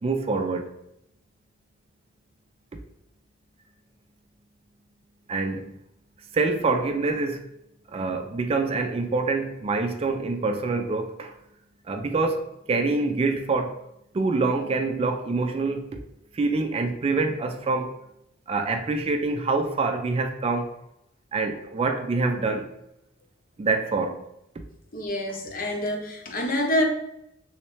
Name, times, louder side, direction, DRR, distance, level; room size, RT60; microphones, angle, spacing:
voice 1, 0.0-0.7 5.3-5.7 6.3-7.5 7.9-11.3 11.9-13.8 14.1-16.0 16.3-18.0 18.5-20.7 21.3-22.7 23.6-24.2, right 3 dB, 30° right, 0.3 m, -26 dB
voice 2, 24.9-26.9, left 1 dB, 50° left, 0.6 m, -26 dB
3.1 x 3.0 x 3.0 m
head